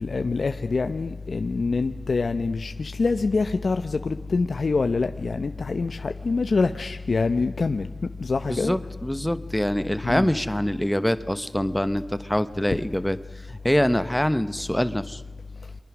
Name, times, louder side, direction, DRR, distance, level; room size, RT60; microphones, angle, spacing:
voice 1, 0.0-7.9 8.2-8.8 10.0-10.4, left 4 dB, 85° left, 8 dB, 0.9 m, -25 dB
voice 2, 8.5-13.2 13.5-15.2, equal, 10° left, 13 dB, 1.1 m, -24 dB
29.0 x 24.0 x 6.2 m, 1.3 s
cardioid pair, 45°, 0 cm